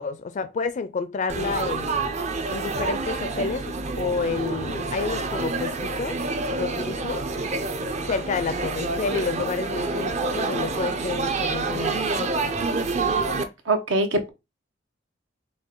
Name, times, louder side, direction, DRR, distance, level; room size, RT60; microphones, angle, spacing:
voice 1, 0.0-2.1 2.5-6.2 6.6-7.2 8.1-12.5, left 4 dB, 40° left, 0.4 m, -30 dB
Laughter / Chatter / Crowd, 1.3-13.4, right 3 dB, 35° right, 0.5 m, -28 dB
voice 2, 13.7-14.3, right 2 dB, 75° right, 0.9 m, -22 dB
4.9 x 2.3 x 3.7 m
head